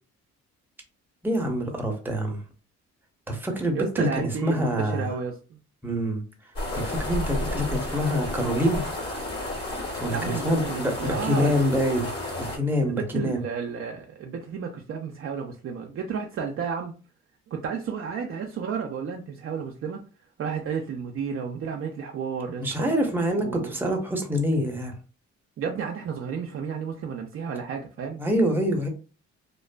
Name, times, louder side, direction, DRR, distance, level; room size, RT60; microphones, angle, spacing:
voice 1, 1.2-2.4 3.3-4.1 4.4-5.1 5.8-6.2 6.7-8.8 10.0-12.1 12.5-13.4 22.6-24.9 28.2-28.9, equal, 5° right, 1 dB, 0.7 m, -25 dB
voice 2, 3.7-5.6 10.1-11.8 12.8-16.9 17.5-20.0 20.4-22.9 23.4-23.7 25.6-28.2, right 6 dB, 45° right, 1 dB, 0.4 m, -32 dB
sound 1, 6.6-12.6, left 1 dB, 50° left, 1.4 m, -31 dB
2.5 x 2.3 x 2.2 m, 0.34 s
cardioid pair, 90°, 30 cm